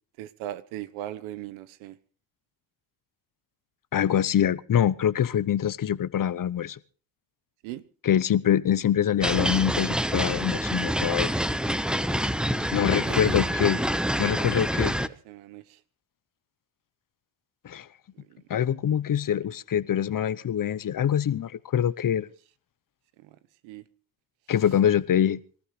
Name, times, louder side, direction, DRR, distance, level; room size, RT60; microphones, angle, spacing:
voice 1, 0.2-2.0 7.6-7.8 13.1-13.4 14.7-15.8 18.1-18.4 23.2-23.4 23.6-23.9, right 13 dB, 80° right, 1.2 m, -39 dB
voice 2, 3.9-6.8 8.0-11.3 12.7-13.8 14.2-14.9 17.6-17.9 18.5-22.3 24.5-25.4, left 9 dB, 45° left, 1.0 m, -24 dB
sound 1, 9.2-15.1, equal, ahead, 1.1 m, -27 dB
25.5 x 14.0 x 3.3 m
supercardioid pair, 60°, 47 cm